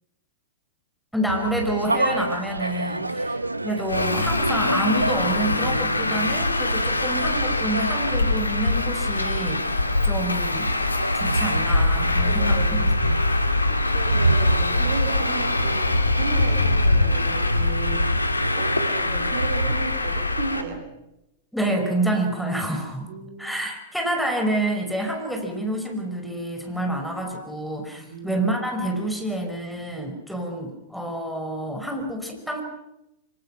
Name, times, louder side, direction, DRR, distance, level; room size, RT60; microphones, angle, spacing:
voice 1, 1.1-3.4 3.6-10.7 11.1-13.2 21.5-23.1 23.4-32.6, right 1 dB, ahead, 3 dB, 5.6 m, -28 dB
sound 1, 1.3-19.8, right 1 dB, 90° right, 1.0 m, -28 dB
Traffic noise roadway noise, 3.9-20.6, left 2 dB, 85° left, 2.2 m, -23 dB
voice 2, 12.2-12.9 13.7-20.9 23.1-23.6 27.9-28.4, right 4 dB, 60° right, 8 dB, 3.9 m, -35 dB
26.0 x 25.5 x 5.9 m, 0.89 s
figure-of-eight pair, 100°, 0 cm